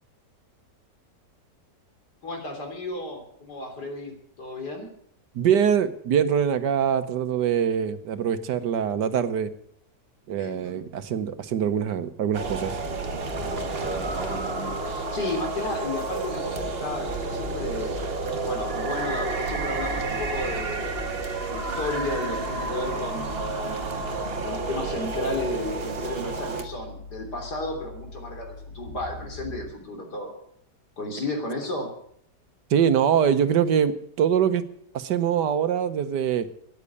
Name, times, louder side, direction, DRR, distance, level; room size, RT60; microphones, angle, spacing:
voice 1, 2.2-4.9 10.3-10.7 13.4-18.0 18.4-20.9 21.5-24.0 24.4-30.3 31.0-31.9, left 2 dB, 65° left, 3 dB, 3.9 m, -33 dB
voice 2, 5.3-9.5 10.3-12.8 32.7-34.6 34.9-36.5, right 8 dB, 75° right, 11 dB, 1.5 m, -23 dB
sound 1, 12.3-26.6, right 4 dB, 35° right, 1.5 m, -31 dB
sound 2, 12.4-29.7, left 3 dB, 85° left, 2.7 m, -41 dB
13.5 x 9.8 x 8.3 m, 0.66 s
omnidirectional pair, 1.9 m